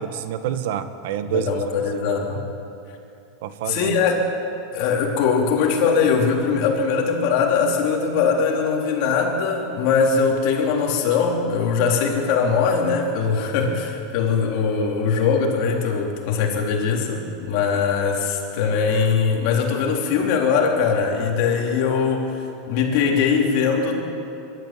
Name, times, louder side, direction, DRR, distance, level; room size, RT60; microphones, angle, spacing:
voice 1, 0.0-1.6 2.3-2.4 3.4-4.0, right 9 dB, 70° right, 10 dB, 1.3 m, -27 dB
voice 2, 1.3-2.4 3.7-4.2 4.7-24.0, left 5 dB, 55° left, 0 dB, 4.0 m, -21 dB
23.0 x 13.0 x 9.1 m, 2.7 s
supercardioid pair, 150°, 0 cm